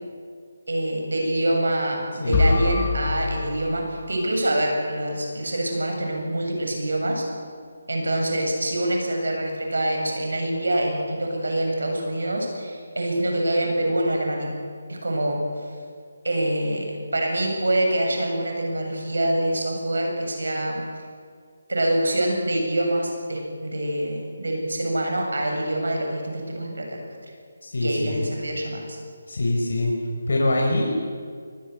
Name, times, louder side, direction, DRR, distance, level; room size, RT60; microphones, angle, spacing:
voice 1, 0.7-7.2 7.9-14.5 14.9-15.7 16.2-20.8 21.7-27.0 27.8-29.0, right 1 dB, 90° right, 1 dB, 7.7 m, -25 dB
voice 2, 2.2-2.6 27.6-28.2 29.3-29.9 30.3-30.9, left 2 dB, 75° left, 0 dB, 4.7 m, -24 dB
sound 1, 2.3-4.4, left 3 dB, 25° left, 4.4 m, -25 dB
23.0 x 20.0 x 8.2 m, 2.1 s
figure-of-eight pair, 165°, 0 cm